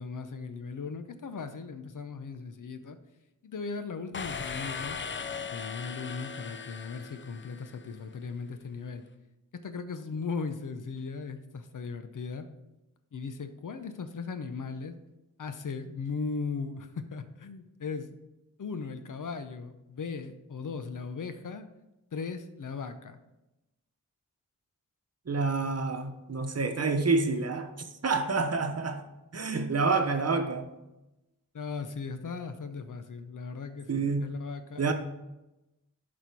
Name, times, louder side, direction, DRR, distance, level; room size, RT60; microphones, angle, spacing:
voice 1, 0.0-3.0 3.4-5.0 5.5-9.0 9.5-12.5 13.1-14.9 15.4-18.2 18.6-21.7 22.1-23.2 31.5-34.8, left 5 dB, 65° left, 9 dB, 0.8 m, -38 dB
sound 1, 4.1-7.9, left 5 dB, 35° left, 0.5 m, -38 dB
voice 2, 25.3-29.0 29.3-30.7 33.9-34.3 34.8-34.9, right 4 dB, 45° right, 6 dB, 0.9 m, -28 dB
11.0 x 4.4 x 4.6 m, 0.97 s
wide cardioid pair, 95°, 34 cm